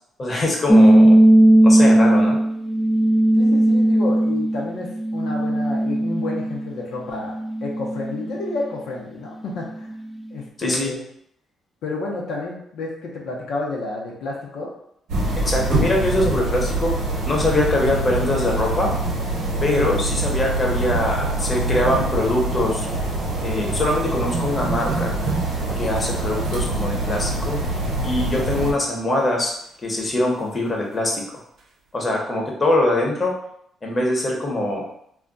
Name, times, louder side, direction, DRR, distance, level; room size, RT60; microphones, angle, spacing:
voice 1, 0.2-1.2 1.6-2.4 10.6-10.9 15.4-16.9 17.2-18.9 19.6-22.9 23.4-25.1 25.8-27.6 28.0-29.5 29.8-31.2 31.9-33.3 33.8-34.8, left 1 dB, 30° left, -1 dB, 0.8 m, -22 dB
sound 1, 0.7-6.7 7.2-8.5, right 1 dB, 5° left, 0.3 m, -16 dB
voice 2, 3.4-9.9 10.3-11.0 11.8-14.7, left 3 dB, 80° left, -2 dB, 0.6 m, -30 dB
sound 2, 15.1-28.7, right 2 dB, 90° right, 0.9 m, -25 dB
sound 3, 17.4-19.8 20.0-20.3 20.8-21.1 21.4-23.3 23.8-23.9 24.1-26.0 27.8-28.4 28.8-30.2 30.7-30.8 31.0-31.1 31.6-31.7, right 3 dB, 55° right, 0.7 m, -34 dB
2.3 x 2.2 x 3.8 m, 0.71 s
cardioid pair, 90°, 0 cm